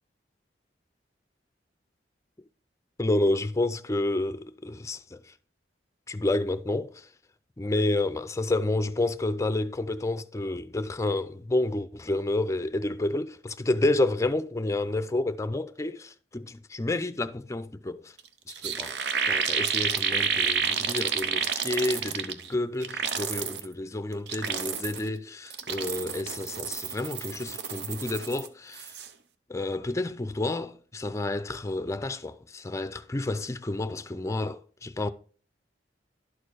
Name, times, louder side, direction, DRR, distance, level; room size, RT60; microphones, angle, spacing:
voice 1, 3.0-5.2 6.1-7.1 7.6-18.1 18.6-19.0 19.3-28.9 29.5-35.1, left 2 dB, 15° left, 0.5 m, -29 dB
sound 1, 18.2-18.3 18.5-22.5 22.8-23.6 24.1-25.1 25.5-28.5 28.7-29.1, right 6 dB, 70° right, 0.7 m, -30 dB
11.5 x 4.4 x 4.7 m
head